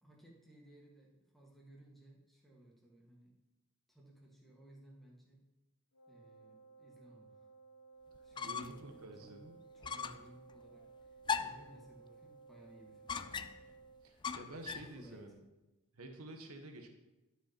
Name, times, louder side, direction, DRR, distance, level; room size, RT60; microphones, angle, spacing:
voice 1, 0.0-3.3 3.9-5.4 6.1-7.5 8.2-9.3 9.7-13.2 14.7-15.2, right 1 dB, ahead, -3 dB, 1.8 m, -60 dB
Wind instrument woodwind instrument, 5.9-14.1, right 4 dB, 85° left, 1.8 m, -58 dB
sound 1, 8.2-8.9 9.2-9.3 9.8-10.3 11.3-11.7 13.1-13.7 14.2-14.9, left 6 dB, 20° left, 0.3 m, -39 dB
voice 2, 8.4-9.6 14.0-15.4 15.9-16.9, right 1 dB, 90° right, 5 dB, 1.2 m, -50 dB
11.5 x 5.6 x 4.3 m, 1.0 s
head